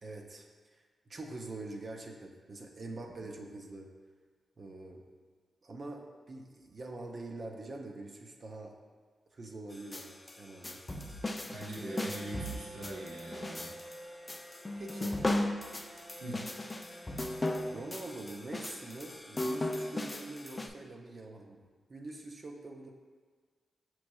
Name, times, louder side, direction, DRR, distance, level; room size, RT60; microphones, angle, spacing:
voice 1, 0.0-0.5 0.7-0.8 1.1-3.9 4.6-5.0 5.6-8.7 9.3-10.8 14.8-15.2 17.7-22.9, right 2 dB, 55° right, 1 dB, 0.5 m, -44 dB
sound 1, 9.7-20.7, left 1 dB, 30° left, 0.3 m, -37 dB
voice 2, 11.4-13.7 16.2-16.4, right 1 dB, 85° right, -7 dB, 0.9 m, -42 dB
Bowed string instrument, 11.7-18.7, right 1 dB, 15° right, 0.8 m, -51 dB
6.0 x 3.0 x 2.3 m, 1.5 s
supercardioid pair, 40°, 0 cm